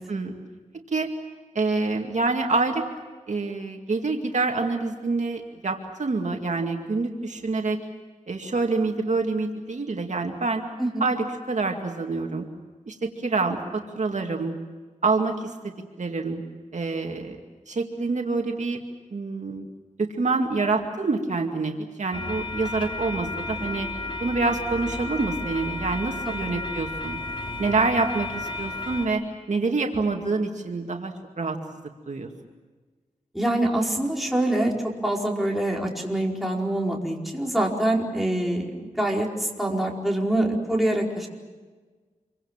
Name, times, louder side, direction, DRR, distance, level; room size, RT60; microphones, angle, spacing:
voice 1, 1.5-2.8 3.3-7.8 8.3-10.7 11.0-12.5 12.9-14.6 15.0-15.7 16.0-16.4 16.7-17.4 17.7-18.8 19.1-19.7 20.0-23.9 24.2-27.2 27.6-29.2 29.5-31.8 32.1-32.3, right 3 dB, 60° right, 2 dB, 2.3 m, -26 dB
sound 1, 22.1-29.1, left 2 dB, 40° left, 3.8 m, -33 dB
voice 2, 33.3-41.3, right 1 dB, ahead, -1 dB, 4.7 m, -25 dB
27.5 x 24.0 x 7.4 m, 1.4 s
wide cardioid pair, 95°, 14 cm